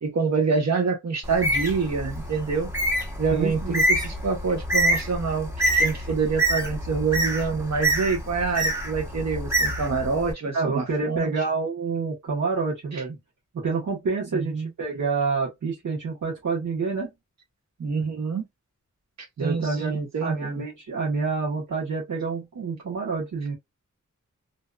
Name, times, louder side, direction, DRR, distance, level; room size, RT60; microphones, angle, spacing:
voice 1, 0.0-2.7 3.2-11.3 12.9-13.0 14.3-14.7 17.8-18.5 19.4-20.6, right 5 dB, 60° right, 1.0 m, -26 dB
Bird, 1.2-10.3, right 1 dB, 10° right, 1.0 m, -26 dB
voice 2, 3.3-3.8 10.5-13.2 13.5-17.1 19.4-23.6, right 4 dB, 80° right, 1.2 m, -28 dB
2.7 x 2.4 x 2.3 m
wide cardioid pair, 110°, 30 cm